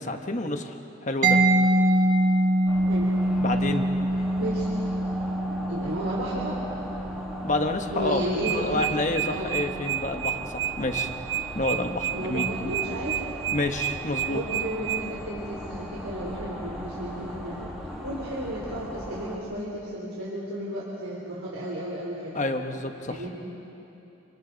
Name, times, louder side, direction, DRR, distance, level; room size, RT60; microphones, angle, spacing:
voice 1, 0.0-1.4 3.4-3.9 7.4-8.2 8.5-11.1 11.5-12.5 13.5-14.4 22.3-23.2, left 2 dB, 35° left, 5 dB, 1.2 m, -29 dB
Mallet percussion, 1.2-8.8, right 1 dB, 40° right, 1.5 m, -25 dB
sound 1, 2.7-19.4, equal, 5° right, 2.3 m, -39 dB
voice 2, 5.7-6.6 7.9-8.8 9.3-9.6 12.1-13.2 14.3-17.7 18.0-22.6 23.1-23.3, right 1 dB, 85° right, -6 dB, 3.7 m, -33 dB
sound 2, 8.4-15.0, right 13 dB, 65° right, 0.9 m, -29 dB
28.5 x 27.0 x 4.0 m, 3.0 s
head